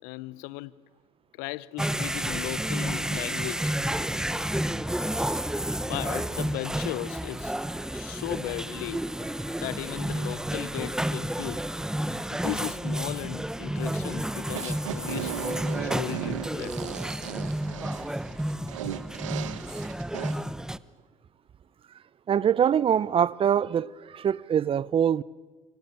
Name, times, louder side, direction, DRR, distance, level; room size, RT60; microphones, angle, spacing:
voice 1, 0.0-0.8 1.3-3.8 5.9-7.5 7.9-9.1 9.4-11.6 12.3-15.5 15.8-16.9, left 19 dB, 70° left, 0.9 m, -37 dB
sound 1, 1.8-20.8, right 1 dB, 5° right, 1.0 m, -31 dB
sound 2, 14.5-20.3, right 12 dB, 85° right, 1.4 m, -36 dB
voice 2, 22.3-25.2, right 8 dB, 35° right, 0.8 m, -24 dB
29.5 x 26.0 x 7.0 m
hypercardioid pair, 70°, 16 cm